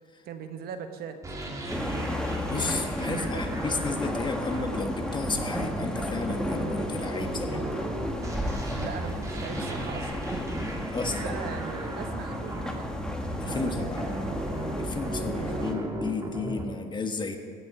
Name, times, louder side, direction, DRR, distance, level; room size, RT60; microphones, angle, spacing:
voice 1, 0.2-1.4 3.0-3.6 8.8-10.4 11.0-12.9 13.4-14.4 15.1-15.8 16.5-16.7, right 7 dB, 65° right, 7 dB, 1.4 m, -40 dB
sound 1, 1.2-16.6, right 1 dB, 20° right, 2.4 m, -36 dB
sound 2, 1.7-15.7, left 1 dB, 5° left, 1.6 m, -33 dB
voice 2, 2.5-7.7 10.9-11.3 13.4-14.0 14.8-17.4, left 3 dB, 25° left, 5 dB, 1.5 m, -32 dB
16.5 x 7.1 x 9.4 m, 2.3 s
cardioid pair, 110°, 17 cm